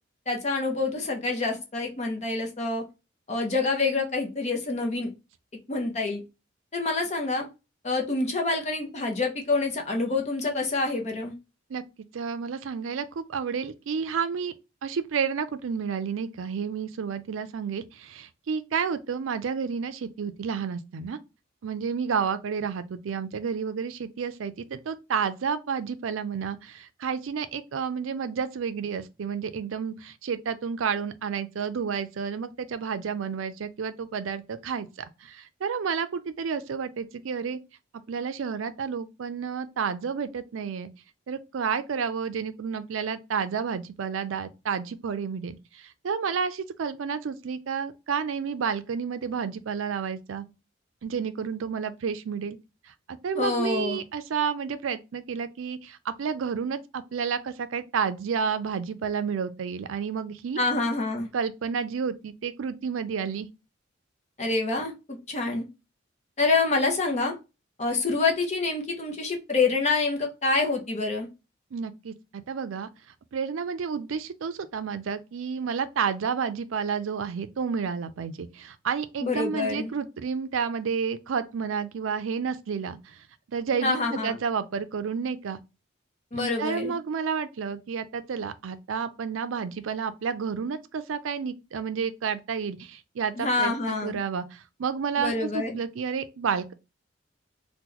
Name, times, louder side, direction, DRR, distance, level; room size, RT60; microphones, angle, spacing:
voice 1, 0.3-2.8 3.3-5.1 5.7-6.2 6.7-7.5 7.8-11.3 53.4-54.0 60.6-61.3 64.4-64.9 65.3-65.6 66.4-67.3 67.8-71.3 79.2-79.9 83.8-84.4 86.3-86.9 93.4-94.2 95.2-95.8, left 3 dB, 35° left, 0.6 m, -27 dB
voice 2, 12.1-14.5 14.8-21.2 21.6-34.9 35.2-37.6 38.1-40.9 41.3-50.5 51.0-52.6 52.9-60.6 61.3-63.5 71.7-72.9 73.3-83.3 83.5-85.6 86.3-96.7, right 6 dB, 80° right, 0.4 m, -30 dB
2.9 x 2.2 x 3.7 m
head